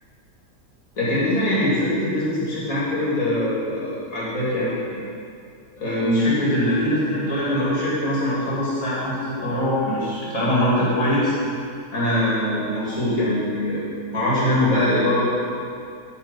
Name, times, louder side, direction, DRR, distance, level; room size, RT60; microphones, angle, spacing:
voice 1, 1.0-5.0 5.8-11.4 11.9-13.8 14.1-15.2, left 1 dB, 80° left, -8 dB, 2.8 m, -22 dB
13.5 x 4.5 x 5.3 m, 2.4 s
omnidirectional pair, 1.5 m